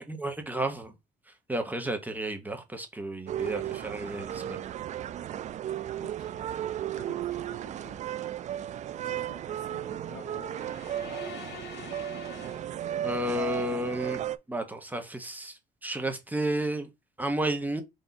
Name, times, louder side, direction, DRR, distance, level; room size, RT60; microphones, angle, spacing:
voice 1, 0.1-0.9 1.5-4.6 13.0-16.9 17.2-17.8, right 1 dB, 10° right, 1.0 m, -32 dB
sound 1, 3.3-14.4, right 11 dB, 45° right, 0.4 m, -35 dB
voice 2, 6.0-6.5 7.0-8.1 8.3-8.5 8.9-11.9, left 5 dB, 70° left, 1.9 m, -51 dB
sound 2, 10.3-13.4, left 3 dB, 90° left, 1.0 m, -45 dB
4.0 x 2.7 x 4.6 m
cardioid pair, 110°, 17 cm